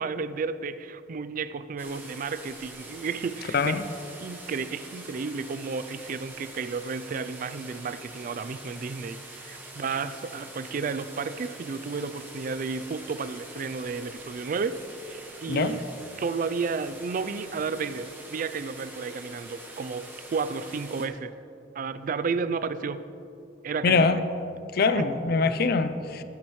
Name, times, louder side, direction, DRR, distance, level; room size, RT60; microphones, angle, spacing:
voice 1, 0.0-3.8 4.2-14.8 15.1-15.8 16.2-21.3 21.7-23.0 23.6-24.2 24.9-25.1, right 5 dB, 45° right, 14 dB, 0.4 m, -32 dB
sound 1, 1.8-21.1, right 2 dB, 10° right, 1.3 m, -45 dB
voice 2, 23.8-24.2 24.7-26.2, left 4 dB, 55° left, 11 dB, 0.5 m, -23 dB
15.5 x 9.5 x 3.1 m, 2.8 s
head